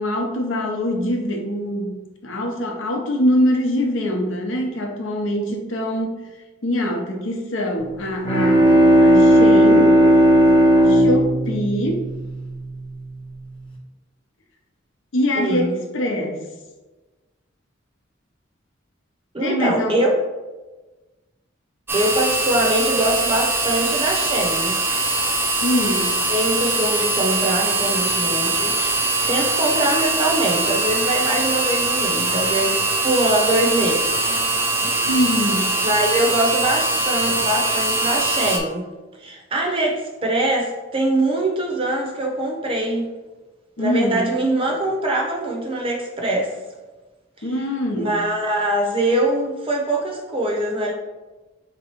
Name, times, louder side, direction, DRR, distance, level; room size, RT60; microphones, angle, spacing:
voice 1, 0.0-6.2 6.6-10.0 10.8-12.1 15.1-16.4 19.4-20.0 25.6-26.1 35.1-35.7 43.8-44.2 47.4-48.2, equal, 75° left, 2 dB, 0.7 m, -23 dB
Bowed string instrument, 8.0-12.8, right 1 dB, 25° left, 0.8 m, -14 dB
voice 2, 15.3-15.8 19.3-20.1 21.9-24.8 26.3-29.0 29.3-34.4 34.8-35.1 35.8-38.8 39.2-43.1 43.8-46.6 47.4-47.5 48.0-50.9, right 1 dB, 25° right, 0 dB, 0.7 m, -23 dB
sound 1, 21.9-38.6, right 2 dB, 10° right, 0.3 m, -22 dB
3.6 x 3.0 x 4.4 m, 1.2 s
head